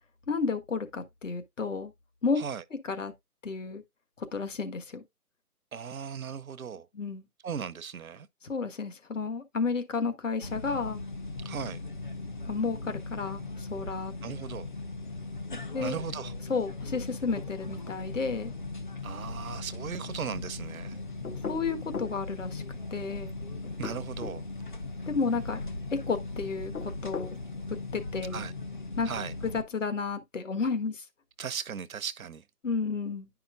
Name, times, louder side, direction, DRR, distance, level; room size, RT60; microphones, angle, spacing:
voice 1, 0.3-1.9 2.2-2.4 2.9-3.1 3.4-3.8 4.2-5.0 6.9-7.2 8.4-11.0 12.4-14.1 15.7-16.0 16.5-18.5 21.5-22.6 22.9-23.3 25.1-25.6 25.9-27.4 27.9-28.4 29.0-29.1 29.5-31.0 32.6-33.3, left 4 dB, 55° left, 1.5 m, -32 dB
voice 2, 5.7-6.9 7.4-8.3 11.4-11.8 14.2-14.7 15.8-16.3 19.0-21.0 23.8-24.4 28.3-28.5 29.0-29.3 31.4-32.4, right 7 dB, 60° right, 0.8 m, -37 dB
sound 1, 10.4-29.6, left 3 dB, 30° left, 0.8 m, -38 dB
sound 2, 21.2-22.2 23.6-24.4 26.5-27.4, left 5 dB, 70° left, 1.2 m, -38 dB
10.0 x 5.7 x 2.4 m
hypercardioid pair, 165°, 46 cm